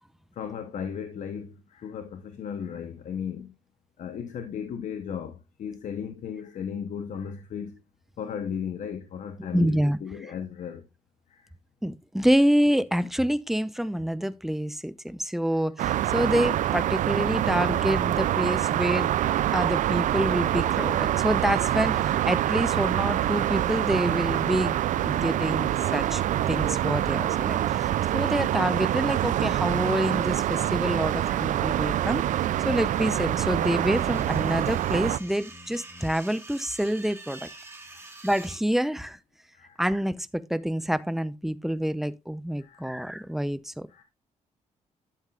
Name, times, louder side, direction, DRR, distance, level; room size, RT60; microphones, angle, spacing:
voice 1, 0.3-3.5 4.0-7.8 8.2-10.8 11.3-11.5 15.5-15.6 17.3-17.4 31.0-31.1 37.9-38.1 39.5-39.8 42.6-43.0 43.9-44.0, left 7 dB, 70° left, 1.0 m, -36 dB
voice 2, 9.5-10.0 11.8-19.1 19.5-32.2 32.6-37.5 38.2-39.2 39.8-43.9, equal, ahead, 0.6 m, -27 dB
sound 1, 15.8-35.2, right 12 dB, 75° right, 0.4 m, -25 dB
sound 2, 29.4-36.1, left 3 dB, 30° left, 1.4 m, -53 dB
sound 3, 33.6-38.6, right 3 dB, 20° right, 2.1 m, -46 dB
11.5 x 7.3 x 2.4 m
cardioid pair, 110°, 13 cm